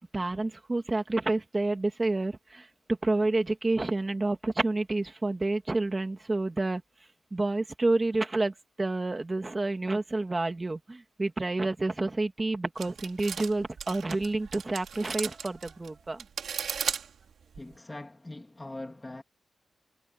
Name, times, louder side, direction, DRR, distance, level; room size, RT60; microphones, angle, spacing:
voice 1, 0.1-6.8 7.3-16.2, right 2 dB, 25° right, 2.7 m, -29 dB
sound 1, 12.8-17.7, right 7 dB, 85° right, 3.0 m, -36 dB
voice 2, 17.5-19.2, left 2 dB, 20° left, 1.9 m, -42 dB
wide cardioid pair, 100°, 0 cm